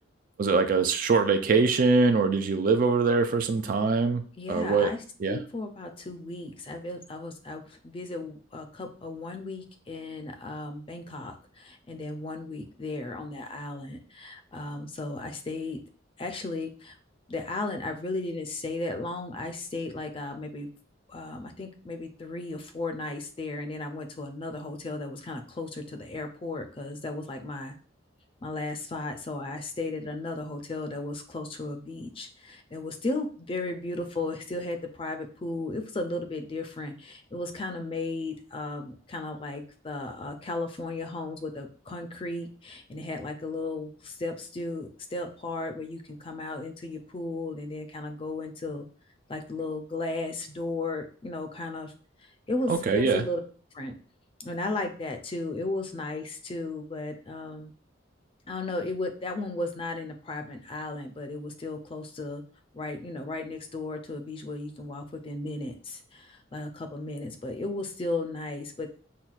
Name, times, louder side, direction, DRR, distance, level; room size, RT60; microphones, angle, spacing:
voice 1, 0.4-4.2 4.5-4.9 5.2-5.4 52.7-53.2, right 4 dB, 45° right, 7 dB, 0.3 m, -23 dB
voice 2, 4.4-15.8 16.2-17.0 17.3-20.7 21.1-27.7 28.4-48.8 49.3-51.9 52.5-53.4 53.7-53.9 54.4-57.7 58.5-62.4 62.7-68.9, left 2 dB, 25° left, 6 dB, 0.4 m, -35 dB
5.7 x 2.3 x 2.4 m, 0.42 s
head